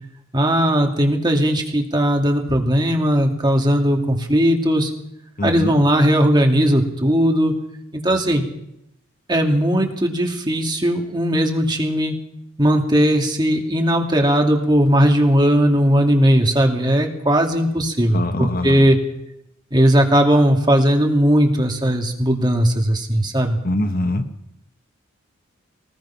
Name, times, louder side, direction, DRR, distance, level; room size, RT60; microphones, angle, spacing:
voice 1, 0.3-4.9 5.4-7.5 7.9-8.4 9.3-12.1 12.6-19.0 19.7-23.6, equal, 20° right, 2 dB, 2.6 m, -18 dB
voice 2, 5.4-5.7 18.1-18.8 23.6-24.3, left 2 dB, 45° left, 8 dB, 1.4 m, -23 dB
23.5 x 19.5 x 5.9 m, 0.81 s
head